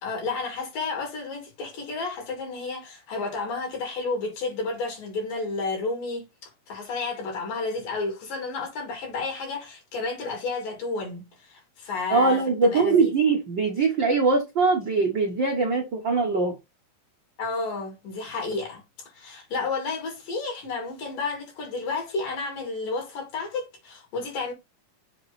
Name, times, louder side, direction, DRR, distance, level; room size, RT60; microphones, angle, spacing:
voice 1, 0.0-13.1 17.4-18.8 19.1-24.5, left 3 dB, 65° left, 4.5 m, -31 dB
voice 2, 12.1-16.6, right 4 dB, 85° right, 1.0 m, -22 dB
7.5 x 3.2 x 4.2 m
omnidirectional pair, 4.3 m